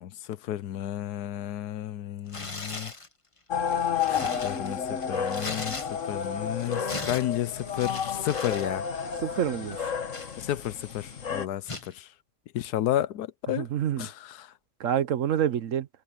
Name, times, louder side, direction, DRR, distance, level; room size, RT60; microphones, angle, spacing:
voice 1, 0.0-2.9 4.2-5.8 6.1-8.9 10.4-12.1 12.5-13.7 14.0-14.5, left 12 dB, 90° left, 1.3 m, -32 dB
Tearing, 2.3-3.1 3.6-6.2 6.5-8.7 8.9-9.2 9.7-10.9 11.7-11.9, left 3 dB, 20° left, 1.3 m, -39 dB
sound 1, 3.5-11.5, left 7 dB, 55° left, 1.7 m, -31 dB
voice 2, 9.2-9.9 13.6-14.1 14.8-15.9, right 10 dB, 60° right, 1.1 m, -27 dB
omnidirectional pair, 1.6 m